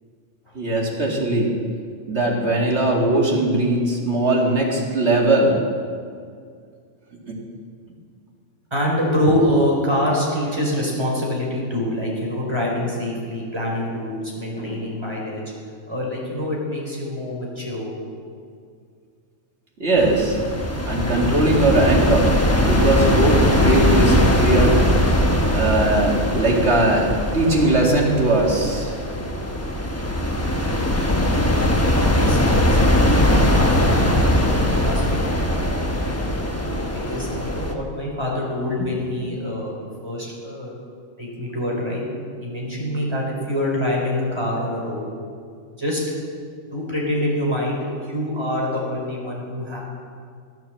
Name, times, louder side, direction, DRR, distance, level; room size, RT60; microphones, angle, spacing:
voice 1, 0.5-1.5 2.1-5.6 19.8-20.4 20.9-22.3 22.6-24.8 25.5-28.9, right 2 dB, 65° right, -2 dB, 2.6 m, -19 dB
voice 2, 8.7-15.4 15.9-17.9 32.1-36.2 37.1-39.7 40.0-40.7 41.2-42.0 42.4-45.1 45.8-46.0 46.7-49.8, left 1 dB, 20° right, -3 dB, 4.2 m, -25 dB
sound 1, 20.0-37.7, left 1 dB, 15° left, 1.0 m, -20 dB
14.0 x 9.1 x 7.6 m, 2.2 s
omnidirectional pair, 1.2 m